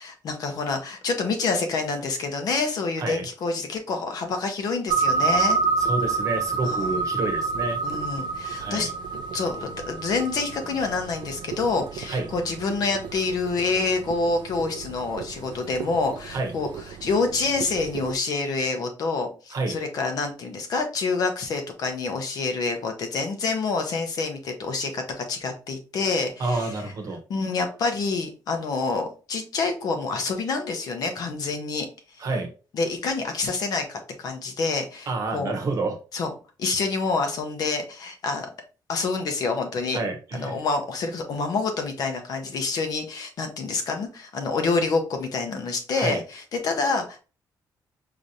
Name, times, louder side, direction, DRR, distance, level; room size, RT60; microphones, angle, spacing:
voice 1, 0.0-5.6 6.6-7.0 7.8-8.9 9.3-26.9 27.3-31.9 32.1-32.2 32.7-35.5 36.1-36.3 36.6-38.5 38.9-40.0 40.3-47.2, left 4 dB, 55° left, 5 dB, 0.8 m, -27 dB
sound 1, 4.9-18.1, right 4 dB, 75° right, 0.4 m, -29 dB
voice 2, 5.8-7.8 8.6-8.9 12.1-12.2 16.3-16.5 19.5-19.8 26.4-27.2 32.2-32.5 35.1-36.0 39.9-40.6 45.9-46.2, right 3 dB, 45° right, 4 dB, 0.9 m, -28 dB
5.0 x 2.9 x 2.6 m, 0.34 s
cardioid pair, 165°, 8 cm